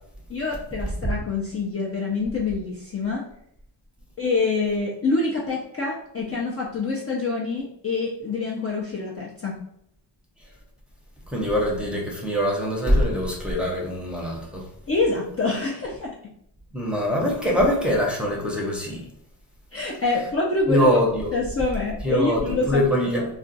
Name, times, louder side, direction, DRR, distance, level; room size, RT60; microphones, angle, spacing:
voice 1, 0.3-3.2 4.2-9.6 14.9-16.1 19.7-21.0 21.3-22.8, left 3 dB, 30° left, -3 dB, 0.5 m, -26 dB
voice 2, 11.3-14.6 16.7-19.0 20.7-21.3 22.0-23.3, equal, ahead, -4 dB, 0.7 m, -23 dB
2.4 x 2.2 x 3.9 m, 0.71 s
wide cardioid pair, 115°, 46 cm